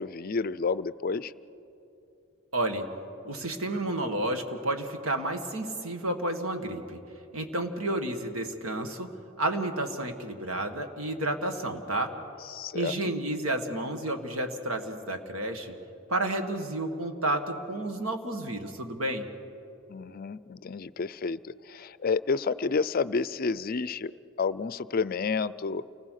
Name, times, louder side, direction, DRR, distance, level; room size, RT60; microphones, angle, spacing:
voice 1, 0.0-1.3 12.5-12.9 19.9-24.1 24.4-25.8, left 4 dB, 45° left, 16 dB, 0.4 m, -30 dB
voice 2, 2.5-2.9 3.3-7.0 7.3-9.1 9.4-12.1 12.7-15.8 16.1-19.3, right 1 dB, 85° right, 6 dB, 1.8 m, -31 dB
29.0 x 20.0 x 6.5 m, 2.9 s
head